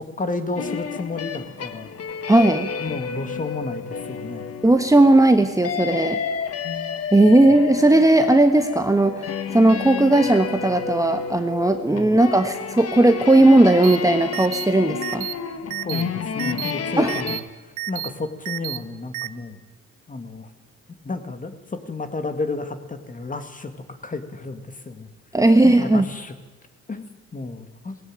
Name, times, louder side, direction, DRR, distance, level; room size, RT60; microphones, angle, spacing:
voice 1, 0.0-1.9 2.8-4.5 11.9-12.2 15.8-17.4 17.9-19.6 20.1-20.5 21.0-25.1 25.6-26.3 26.9-28.0, left 3 dB, 25° left, 8 dB, 2.2 m, -32 dB
sound 1, 0.6-17.4, left 6 dB, 50° left, 1.6 m, -31 dB
voice 2, 2.3-2.7 4.6-6.2 7.1-15.3 17.0-17.2 25.3-26.0, right 2 dB, 10° right, 7 dB, 1.3 m, -16 dB
sound 2, 13.8-14.0 14.3-14.7 15.0-15.3 15.7-16.0 16.4-16.7 17.1-17.4 17.8-18.1 18.5-18.8 19.1-19.3, right 17 dB, 85° right, 0.8 m, -30 dB
17.5 x 17.0 x 9.1 m, 1.2 s
cardioid pair, 90°, 30 cm